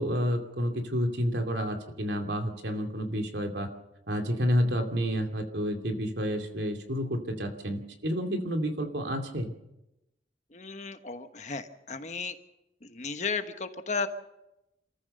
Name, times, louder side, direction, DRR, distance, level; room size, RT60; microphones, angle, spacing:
voice 1, 0.0-3.7 4.1-9.5, equal, 80° right, 4 dB, 2.7 m, -30 dB
voice 2, 10.5-12.4 12.8-14.1, left 5 dB, 40° left, 8 dB, 1.3 m, -34 dB
28.0 x 14.5 x 6.7 m, 0.91 s
head